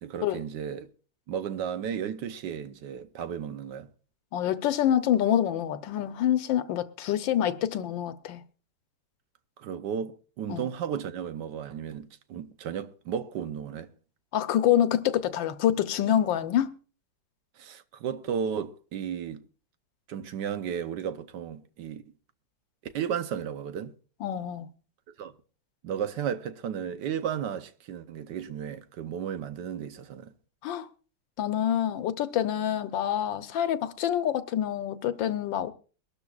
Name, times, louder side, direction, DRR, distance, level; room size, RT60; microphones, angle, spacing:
voice 1, 0.0-0.9 1.3-3.9 9.6-13.9 17.6-19.4 20.1-22.0 22.8-23.9 25.2-25.3 25.8-30.3, right 8 dB, 70° right, 1.3 m, -34 dB
voice 2, 4.3-8.4 10.5-10.7 14.3-16.7 24.2-24.7 30.6-30.9 31.4-35.7, left 10 dB, 85° left, 1.5 m, -26 dB
22.5 x 12.5 x 2.4 m
omnidirectional pair, 2.0 m